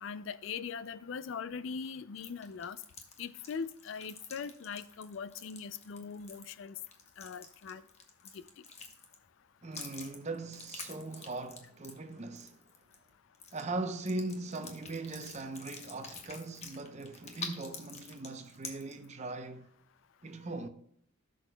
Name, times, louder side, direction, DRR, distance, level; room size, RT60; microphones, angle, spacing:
voice 1, 0.0-2.8 3.2-6.8 7.2-7.8, left 6 dB, 65° left, 0.4 m, -41 dB
sound 1, 2.2-9.3 9.7-13.1 13.3-13.6 14.1-19.1, left 4 dB, 30° left, 1.0 m, -47 dB
voice 2, 9.6-12.6 13.5-19.7 20.2-20.7, right 2 dB, 35° right, 0.6 m, -40 dB
15.0 x 6.3 x 2.2 m
head